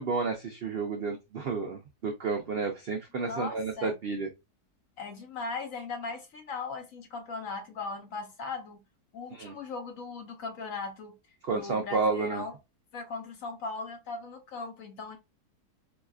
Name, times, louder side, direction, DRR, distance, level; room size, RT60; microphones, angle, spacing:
voice 1, 0.0-4.3 9.3-9.5 11.4-12.4, right 4 dB, 75° right, 0.5 m, -31 dB
voice 2, 3.3-4.0 5.0-8.8 9.1-11.2 11.5-12.5 12.9-15.2, left 4 dB, 60° left, 1.1 m, -38 dB
4.8 x 2.3 x 2.3 m
omnidirectional pair, 1.7 m